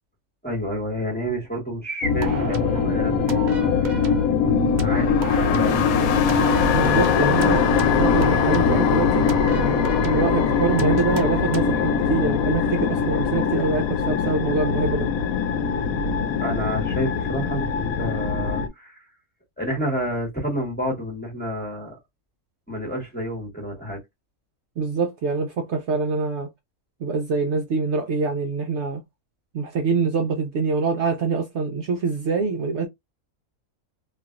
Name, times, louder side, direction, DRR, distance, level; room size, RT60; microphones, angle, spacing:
voice 1, 0.4-4.0 4.4-6.2 16.4-19.0 19.6-22.0 22.7-24.0, equal, 10° left, 1.0 m, -29 dB
sound 1, 2.0-18.7, left 6 dB, 80° left, 1.0 m, -21 dB
sound 2, 2.2-2.9 3.3-4.3 4.8-5.9 6.3-8.9 9.3-10.3 10.8-11.8, right 5 dB, 90° right, 0.4 m, -33 dB
voice 2, 6.7-7.7 8.0-9.3 10.0-15.1 24.8-26.5 27.0-29.0 29.5-32.9, right 4 dB, 65° right, 0.8 m, -25 dB
3.1 x 2.5 x 2.4 m
omnidirectional pair, 1.5 m